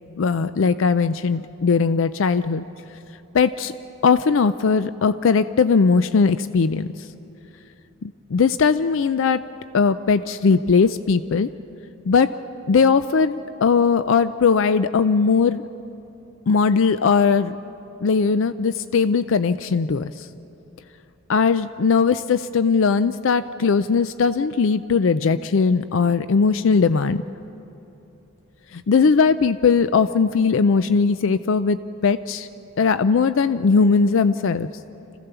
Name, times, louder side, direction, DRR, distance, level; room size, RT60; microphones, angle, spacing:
voice 1, 0.2-2.6 3.3-3.7 4.0-6.9 8.0-9.4 9.7-11.5 12.1-12.3 12.7-15.6 16.5-17.6 18.0-20.1 21.3-27.2 28.7-32.5 32.8-34.7, left 5 dB, 65° left, 13 dB, 0.4 m, -19 dB
26.5 x 16.0 x 6.9 m, 2.9 s
head